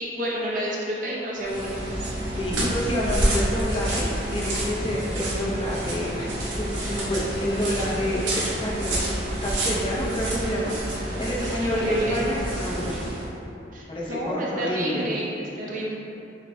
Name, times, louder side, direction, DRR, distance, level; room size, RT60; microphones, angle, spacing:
voice 1, 0.0-1.8 11.4-12.2 13.7-16.0, right 1 dB, 45° right, -4 dB, 0.6 m, -29 dB
sound 1, 1.4-13.3, right 1 dB, 85° right, 0.9 m, -28 dB
voice 2, 2.3-9.1 9.4-13.0 13.9-15.0, equal, 30° left, -6 dB, 0.6 m, -29 dB
6.5 x 2.2 x 2.7 m, 2.8 s
head